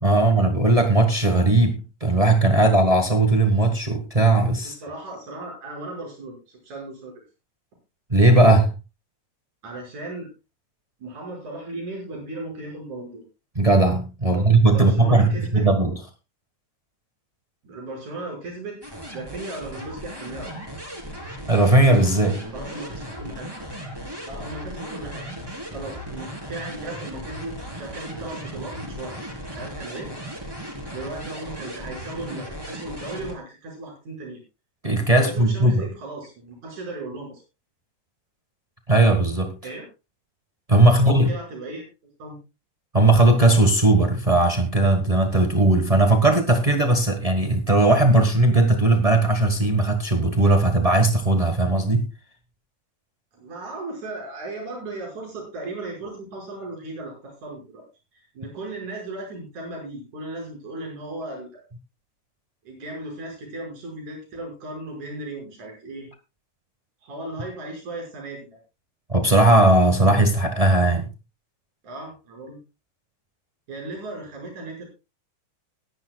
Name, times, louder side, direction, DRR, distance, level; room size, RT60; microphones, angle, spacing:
voice 1, 0.0-4.7 8.1-8.7 13.5-15.9 21.5-22.4 34.8-35.9 38.9-39.5 40.7-41.3 42.9-52.0 69.1-71.1, right 2 dB, 60° right, 0.3 m, -18 dB
voice 2, 4.6-7.1 9.6-10.3 11.0-13.3 14.2-14.4 14.7-15.7 17.6-18.8 19.1-20.6 22.5-23.5 24.2-25.3 25.7-29.2 29.5-30.1 30.9-34.4 35.1-37.4 39.6-39.9 40.8-41.9 42.2-42.4 53.3-57.9 58.1-61.6 62.7-66.1 67.0-68.6 71.8-72.6 73.7-74.9, right 2 dB, 80° right, 7.0 m, -36 dB
sound 1, 18.8-33.3, equal, 10° right, 3.6 m, -36 dB
21.0 x 11.0 x 2.3 m
omnidirectional pair, 3.4 m